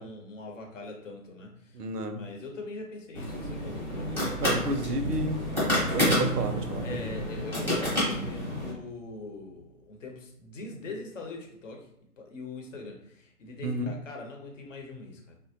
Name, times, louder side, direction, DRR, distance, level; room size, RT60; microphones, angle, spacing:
voice 1, 0.0-1.8 2.1-4.8 6.8-11.9 12.2-15.4, left 3 dB, 55° left, 2 dB, 0.8 m, -42 dB
voice 2, 1.7-2.2 4.4-5.4 5.9-7.1 13.6-13.9, right 1 dB, 80° right, 7 dB, 0.6 m, -31 dB
sound 1, 3.1-8.7, left 1 dB, 5° left, 0.8 m, -29 dB
Bowed string instrument, 6.1-8.9, right 7 dB, 45° right, 0.5 m, -38 dB
3.3 x 2.2 x 2.7 m, 0.73 s
figure-of-eight pair, 135°, 46 cm